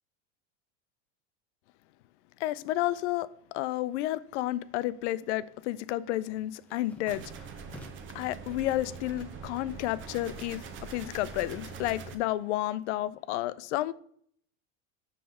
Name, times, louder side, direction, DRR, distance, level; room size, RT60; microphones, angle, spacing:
voice 1, 2.4-7.5 8.1-13.9, left 15 dB, 75° left, 0.5 m, -31 dB
sound 1, 5.5-8.3 8.7-9.4 9.7-11.4, left 1 dB, 5° left, 0.8 m, -53 dB
sound 2, 7.1-12.2, right 6 dB, 35° right, 0.8 m, -43 dB
9.3 x 3.3 x 5.4 m
supercardioid pair, 140°, 35 cm